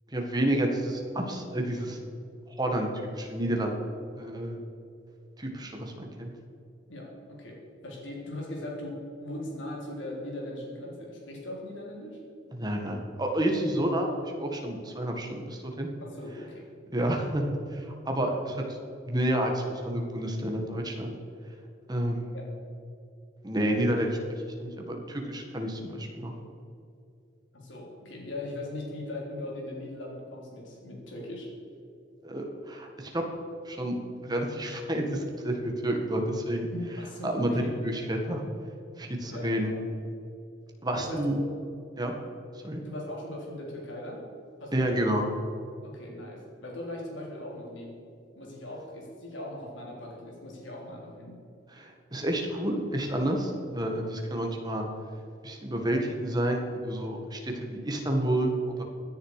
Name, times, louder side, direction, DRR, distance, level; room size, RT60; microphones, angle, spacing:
voice 1, 0.1-2.0 2.5-2.9 3.2-3.7 4.2-4.6 5.4-6.3 12.5-14.1 14.4-15.9 16.9-17.5 17.7-18.6 19.1-21.1 21.9-22.4 23.4-26.3 32.2-33.2 33.7-34.0 34.2-36.7 37.2-38.4 39.0-39.7 40.8-41.4 42.0-42.1 42.6-42.8 44.7-45.2 51.8-54.9 55.4-58.8, right 1 dB, 20° right, 2 dB, 1.7 m, -29 dB
voice 2, 6.9-12.2 16.0-16.7 22.3-22.5 27.5-31.5 36.7-37.7 39.3-39.8 40.9-41.4 42.8-44.3 44.6-45.1 45.8-48.0 48.3-51.4, left 1 dB, 75° left, -2 dB, 3.8 m, -39 dB
16.5 x 10.5 x 5.0 m, 2.5 s
head